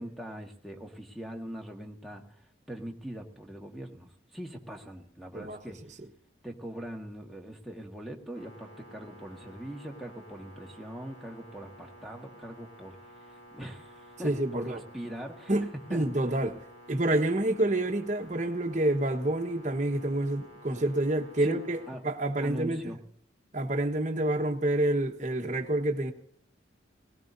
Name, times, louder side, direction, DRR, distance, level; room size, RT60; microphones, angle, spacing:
voice 1, 0.0-2.2 2.7-5.8 6.4-13.0 13.3-15.5 15.9-16.0 21.4-21.6 21.9-22.0 22.4-23.0, right 1 dB, ahead, 1.6 m, -41 dB
sound 1, 8.3-22.0, equal, 80° left, 6.2 m, -52 dB
voice 2, 14.2-14.8 15.5-16.6 16.9-22.9 23.5-26.1, right 1 dB, 40° right, 1.2 m, -28 dB
18.5 x 18.0 x 2.7 m
head